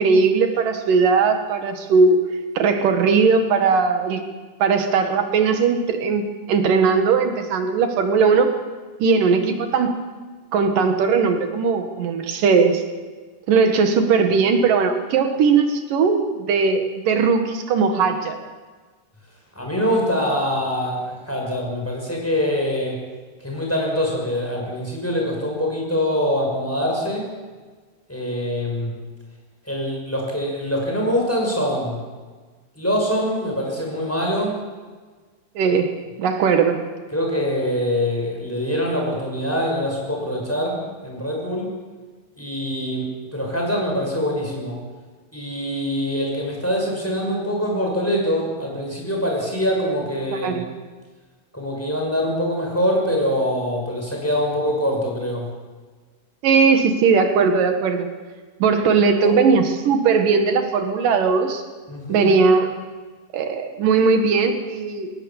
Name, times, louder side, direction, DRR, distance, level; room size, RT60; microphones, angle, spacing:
voice 1, 0.0-2.2 2.6-4.2 4.6-6.2 6.5-8.5 9.0-9.9 10.5-12.8 13.5-18.4 35.6-35.9 36.2-36.8 50.3-50.7 56.4-58.1 58.6-61.6 62.1-62.7 63.3-65.1, right 5 dB, 85° right, 6 dB, 3.3 m, -18 dB
voice 2, 19.5-23.0 23.4-27.3 28.1-28.9 29.7-32.0 32.8-34.6 37.1-41.7 42.4-44.8 45.3-50.6 51.5-55.5 59.2-59.3 61.9-62.3, equal, 5° left, -1 dB, 5.6 m, -24 dB
20.5 x 18.0 x 7.2 m, 1.4 s
omnidirectional pair, 3.7 m